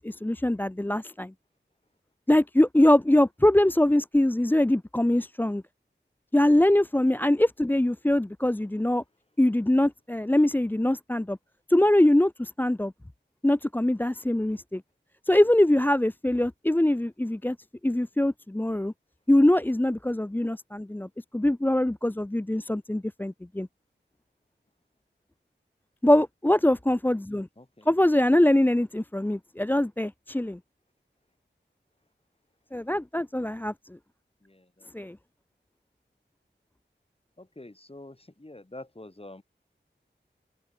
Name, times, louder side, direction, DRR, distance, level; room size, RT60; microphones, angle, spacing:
voice 1, 0.0-1.3 2.3-5.6 6.3-9.0 9.4-11.4 11.7-12.9 13.4-14.8 15.3-17.6 17.8-18.9 19.3-23.7 26.0-27.5 27.9-30.6 32.7-34.0 34.9-35.2, left 1 dB, 10° left, 0.5 m, -23 dB
voice 2, 27.6-27.9 34.4-34.9 37.4-39.4, left 2 dB, 30° left, 6.8 m, -46 dB
open air
wide cardioid pair, 70°, 19 cm